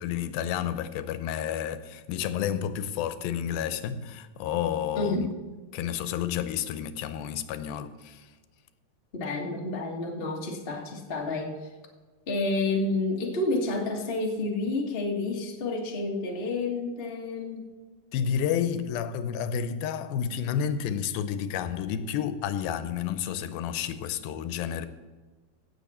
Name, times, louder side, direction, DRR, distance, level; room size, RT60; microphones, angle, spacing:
voice 1, 0.0-5.3 5.7-8.3 18.1-24.9, left 9 dB, 90° left, 2.5 m, -30 dB
voice 2, 4.9-5.3 9.1-11.7 12.3-17.7, left 2 dB, 45° left, 0.7 m, -30 dB
17.0 x 7.1 x 4.2 m
omnidirectional pair, 4.2 m